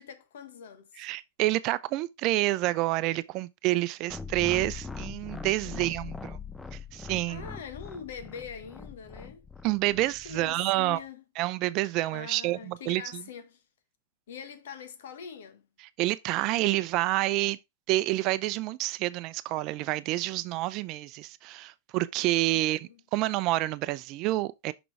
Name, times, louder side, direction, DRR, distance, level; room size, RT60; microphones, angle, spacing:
voice 1, 0.0-1.1 5.6-6.2 7.3-9.5 9.8-11.2 12.1-13.6 14.3-15.7 22.5-23.0, left 7 dB, 75° left, 1.4 m, -44 dB
voice 2, 1.0-6.4 6.7-7.4 9.6-11.0 11.4-13.2 16.0-17.6 17.9-24.7, right 18 dB, 45° right, 0.5 m, -28 dB
sound 1, 4.1-10.5, left 4 dB, 10° left, 0.6 m, -41 dB
6.1 x 6.0 x 3.2 m
hypercardioid pair, 105°, 0 cm